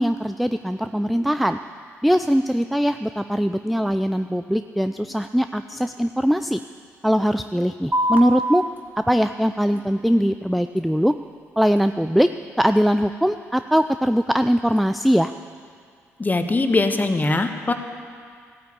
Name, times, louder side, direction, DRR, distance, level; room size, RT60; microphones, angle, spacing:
voice 1, 0.0-1.6 2.0-6.6 7.0-8.6 9.1-11.1 11.6-12.3 12.6-15.3, equal, ahead, 10 dB, 0.4 m, -21 dB
sound 1, 7.9-14.9, right 1 dB, 25° right, 2.0 m, -32 dB
voice 2, 16.2-17.7, left 2 dB, 25° left, 7 dB, 1.3 m, -21 dB
16.0 x 9.4 x 8.6 m, 2.1 s
figure-of-eight pair, 40°, 7 cm